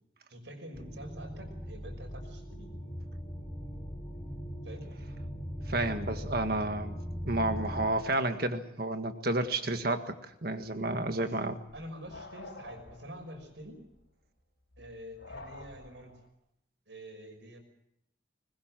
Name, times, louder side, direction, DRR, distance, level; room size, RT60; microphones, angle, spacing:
voice 1, 0.3-2.7 4.6-4.9 11.1-11.4 11.7-13.8 14.8-16.1 16.9-17.6, equal, 80° right, 3 dB, 6.0 m, -47 dB
sound 1, 0.7-7.9, equal, 20° left, 3.5 m, -39 dB
voice 2, 5.7-6.9 7.3-10.2 10.4-11.6, right 2 dB, 55° right, 7 dB, 1.7 m, -31 dB
sound 2, 10.5-16.3, left 2 dB, 90° left, 4.4 m, -50 dB
21.0 x 21.0 x 7.6 m, 0.79 s
head